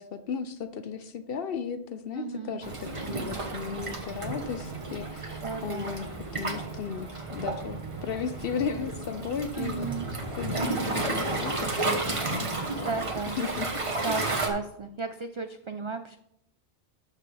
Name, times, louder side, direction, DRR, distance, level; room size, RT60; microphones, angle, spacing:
voice 1, 0.0-6.1 6.3-9.9 10.4-13.0 13.4-13.7 14.0-14.2, left 6 dB, 65° left, 10 dB, 0.8 m, -35 dB
voice 2, 2.1-2.6 5.4-5.9 9.5-10.1 12.8-13.4 14.0-16.2, right 4 dB, 55° right, 8 dB, 0.3 m, -34 dB
Waves surf, 2.6-14.5, right 2 dB, 30° right, 1.1 m, -32 dB
11.5 x 6.6 x 3.3 m, 0.74 s
omnidirectional pair, 1.1 m